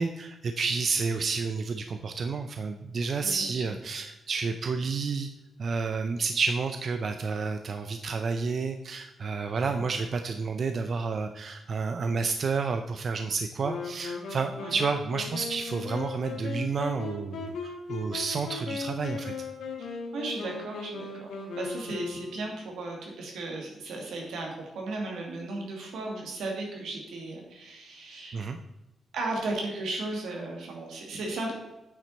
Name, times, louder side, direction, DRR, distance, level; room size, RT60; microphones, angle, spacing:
voice 1, 0.0-5.3 5.6-19.3 28.3-28.6, right 4 dB, 50° right, 7 dB, 0.5 m, -30 dB
voice 2, 3.2-3.7 14.6-14.7 20.1-28.4 29.1-31.5, right 2 dB, 90° right, 0 dB, 2.3 m, -35 dB
Wind instrument woodwind instrument, 13.6-22.6, left 4 dB, 85° left, 1.5 m, -37 dB
8.5 x 6.2 x 4.2 m, 0.97 s
cardioid pair, 120°, 0 cm